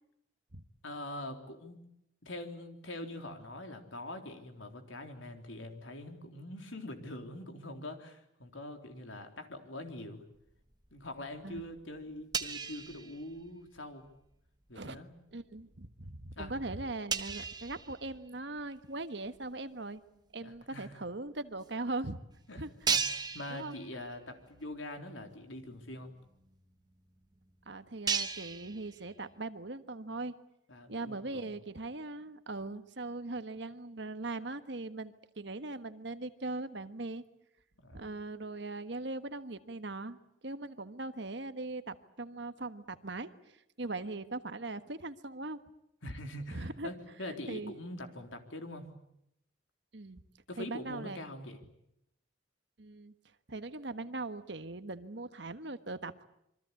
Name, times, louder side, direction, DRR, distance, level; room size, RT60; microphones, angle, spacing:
voice 1, 0.8-1.9 2.2-10.3 10.9-14.1 14.7-15.1 16.4-16.5 20.4-21.0 22.5-22.6 22.9-23.1 23.3-26.1 30.7-31.5 37.8-38.1 46.0-48.9 50.5-51.6, left 1 dB, 80° left, 5 dB, 3.7 m, -44 dB
sound 1, 10.5-11.2 11.5-13.8 14.1-14.3 14.9-15.1 15.7-15.8 16.2-16.3 16.5-16.6 17.1-18.7 19.3-19.4 20.5-20.6 20.8-20.9 21.6-21.7 22.1-22.2 22.8-24.3 24.6-24.8 25.3-25.4 25.6-29.4, right 5 dB, 20° right, 1.2 m, -37 dB
voice 2, 15.3-20.0 20.3-22.2 22.6-22.7 23.5-23.7 27.7-30.3 30.9-37.2 37.9-40.2 40.4-45.6 46.5-46.9 47.5-47.7 49.9-50.2 50.6-51.2 52.8-53.1 53.5-56.3, right 2 dB, 60° right, 11 dB, 1.4 m, -40 dB
27.0 x 24.5 x 8.4 m, 0.80 s
head